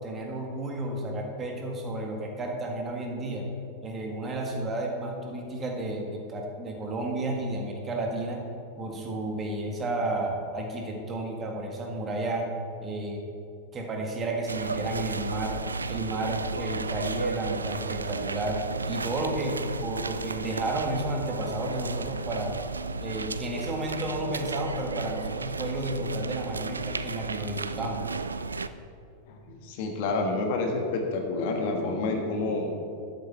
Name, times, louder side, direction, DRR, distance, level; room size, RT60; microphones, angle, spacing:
voice 1, 0.0-3.5 3.8-8.5 8.8-12.5 12.8-13.2 13.7-15.6 15.9-22.5 23.0-28.1, right 2 dB, 25° right, 1 dB, 1.7 m, -32 dB
sound 1, 14.5-28.7, right 4 dB, 75° right, 0.4 m, -33 dB
voice 2, 29.3-32.7, left 3 dB, 50° left, 4 dB, 1.4 m, -29 dB
12.0 x 8.7 x 4.2 m, 2.5 s
figure-of-eight pair, 90°, 0 cm